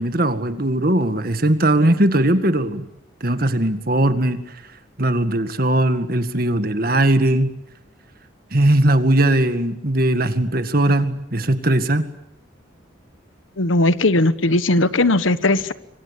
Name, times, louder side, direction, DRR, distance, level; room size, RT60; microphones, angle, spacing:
voice 1, 0.0-2.9 3.2-4.4 5.0-7.5 8.5-12.0, right 1 dB, 45° right, 9 dB, 2.0 m, -19 dB
voice 2, 13.6-15.7, left 2 dB, 80° left, 14 dB, 1.2 m, -18 dB
26.5 x 24.0 x 8.4 m, 0.81 s
head